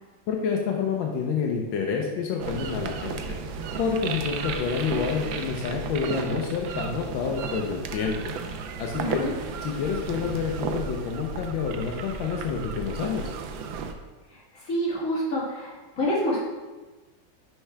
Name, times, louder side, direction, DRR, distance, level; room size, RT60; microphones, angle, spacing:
voice 1, 0.3-3.4 3.8-8.2 8.8-9.2 9.6-13.3, left 6 dB, 85° left, 1 dB, 1.5 m, -28 dB
sound 1, 2.4-13.9, right 5 dB, 85° right, 1.4 m, -34 dB
voice 2, 9.0-9.4 14.3-16.4, equal, 45° left, -6 dB, 2.5 m, -28 dB
10.5 x 4.5 x 3.4 m, 1.2 s
omnidirectional pair, 2.1 m